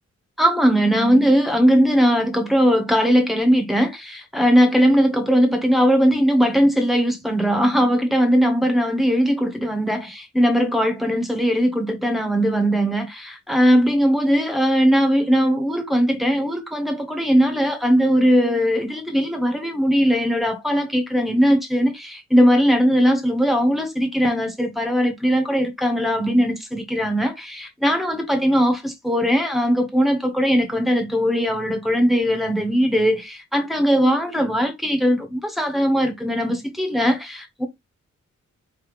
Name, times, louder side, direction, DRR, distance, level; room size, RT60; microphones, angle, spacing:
voice 1, 0.4-37.7, equal, ahead, 1.1 m, -19 dB
4.5 x 3.4 x 3.2 m
wide cardioid pair, 150°, 29 cm